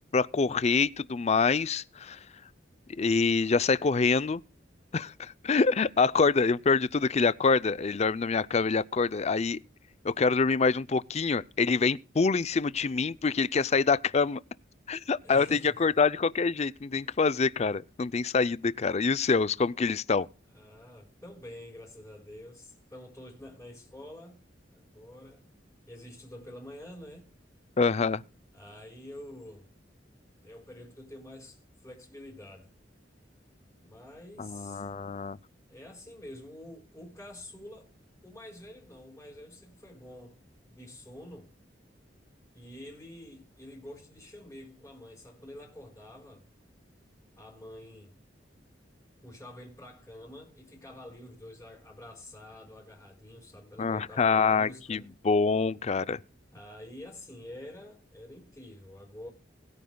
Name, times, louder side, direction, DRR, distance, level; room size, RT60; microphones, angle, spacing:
voice 1, 0.1-2.2 3.0-4.4 4.9-9.6 10.0-14.4 14.9-20.3 27.8-28.2 34.4-35.4 53.8-56.2, left 4 dB, 35° left, 0.5 m, -26 dB
voice 2, 15.2-16.0 17.0-17.2 20.5-24.4 24.7-25.4 25.9-27.3 28.5-29.7 30.4-32.7 33.8-34.9 35.7-37.9 38.2-40.4 40.7-41.5 42.5-46.4 47.4-48.2 49.2-55.1 56.5-59.3, left 1 dB, 10° left, 4.6 m, -47 dB
20.5 x 9.4 x 2.3 m
head